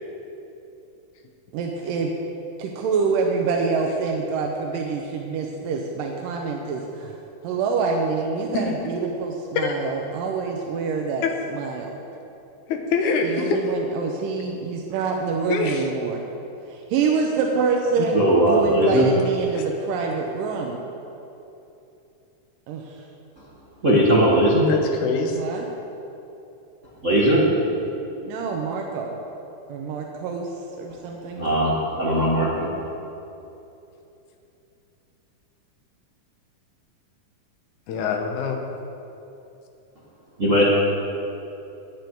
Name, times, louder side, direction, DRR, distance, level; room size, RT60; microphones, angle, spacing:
voice 1, 1.5-2.1 2.6-7.2 7.4-11.2 11.5-11.9 13.2-16.2 16.7-20.8 22.7-23.0 25.3-25.7 28.2-29.2 29.7-30.5 30.8-31.5, right 5 dB, 90° right, 1 dB, 2.6 m, -26 dB
voice 2, 12.7-13.6 15.5-15.9 18.0-18.1 24.7-25.4 37.9-38.6, left 5 dB, 70° left, 3 dB, 2.5 m, -24 dB
voice 3, 18.1-19.1 23.8-24.7 27.0-27.4 31.3-32.7 40.4-40.6, equal, 45° right, -5 dB, 1.0 m, -19 dB
19.0 x 8.7 x 4.6 m, 2.9 s
omnidirectional pair, 3.8 m